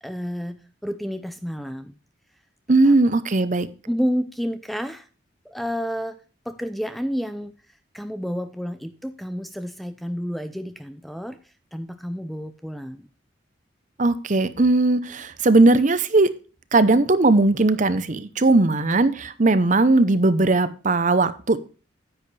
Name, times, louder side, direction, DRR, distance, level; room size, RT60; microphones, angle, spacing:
voice 1, 0.0-1.9 2.9-3.0 3.9-5.1 5.4-6.2 6.5-7.5 7.9-11.4 11.7-13.1, equal, ahead, 10 dB, 0.5 m, -30 dB
voice 2, 2.7-3.7 14.0-16.3 16.7-21.6, right 2 dB, 40° right, 13 dB, 0.7 m, -18 dB
9.9 x 9.1 x 3.3 m, 0.35 s
head